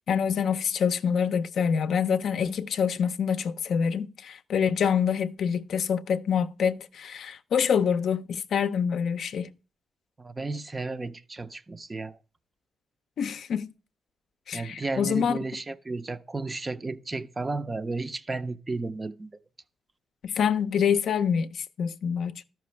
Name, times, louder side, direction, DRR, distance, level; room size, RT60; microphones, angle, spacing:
voice 1, 0.1-9.5 13.2-13.7 14.5-15.4 20.2-22.5, left 7 dB, 60° left, 0.5 m, -26 dB
voice 2, 10.2-12.2 14.5-19.3, right 3 dB, 20° right, 0.5 m, -33 dB
12.5 x 5.8 x 3.2 m
cardioid pair, 125°, 0 cm